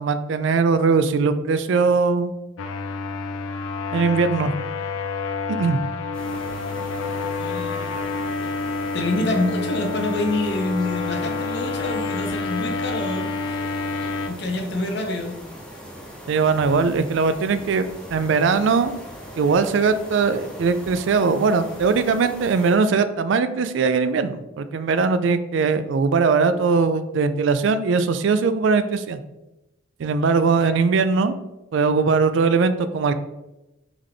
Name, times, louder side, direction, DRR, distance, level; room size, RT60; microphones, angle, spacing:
voice 1, 0.0-2.3 3.9-4.5 5.5-5.8 16.3-17.8 18.1-18.9 19.4-29.2 30.0-31.3 31.7-33.1, right 4 dB, 65° right, 11 dB, 0.3 m, -20 dB
sound 1, 2.6-14.3, left 4 dB, 90° left, 0.4 m, -28 dB
sound 2, 6.1-22.7, equal, 5° left, 0.7 m, -40 dB
voice 2, 7.2-8.3 8.9-13.6 14.3-15.3 30.2-30.5, left 2 dB, 55° left, 3 dB, 0.7 m, -27 dB
3.6 x 3.3 x 3.7 m, 0.96 s
head